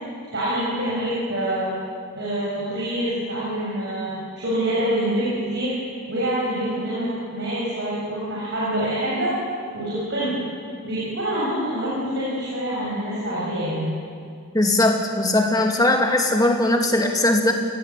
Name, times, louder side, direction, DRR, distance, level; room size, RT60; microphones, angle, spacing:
voice 1, 0.3-1.7 2.1-5.7 6.1-9.3 9.7-10.4 10.8-13.9, right 1 dB, 50° right, -7 dB, 6.8 m, -26 dB
voice 2, 14.5-17.5, left 1 dB, 15° left, 2 dB, 2.6 m, -19 dB
28.5 x 17.5 x 8.5 m, 2.2 s
head